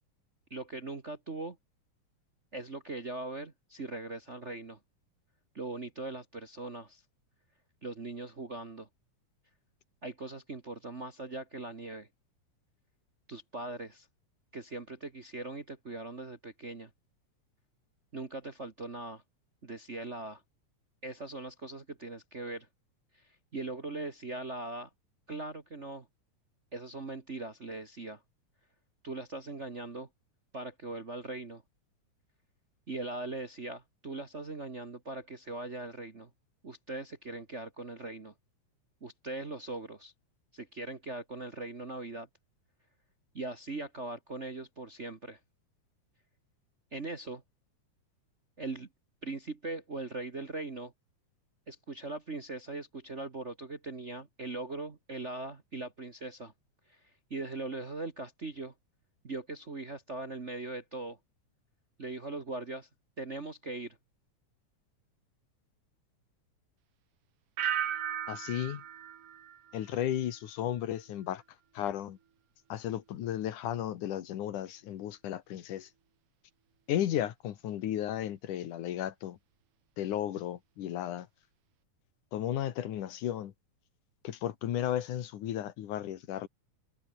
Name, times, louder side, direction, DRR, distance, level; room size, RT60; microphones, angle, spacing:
voice 1, 0.5-1.6 2.5-4.8 5.5-7.0 7.8-8.9 10.0-12.1 13.3-14.1 14.5-16.9 18.1-19.2 19.6-20.4 21.0-22.7 23.5-24.9 25.3-26.1 26.7-28.2 29.0-30.1 30.5-31.6 32.9-36.3 36.6-38.3 39.0-40.1 40.5-42.3 43.3-45.4 46.9-47.4 48.6-48.9 49.2-50.9 51.7-56.5 56.9-57.0 57.3-58.7 59.2-61.2 62.0-62.9 63.2-64.0, right 2 dB, 35° right, 1.2 m, -40 dB
sound 1, 67.6-70.4 70.7-71.2, right 9 dB, 55° right, 2.1 m, -37 dB
voice 2, 68.3-68.8 69.7-71.4 71.7-72.2 72.7-75.9 76.9-79.4 80.0-81.3 82.3-83.5 84.2-86.5, left 11 dB, 85° left, 3.0 m, -34 dB
omnidirectional pair, 3.4 m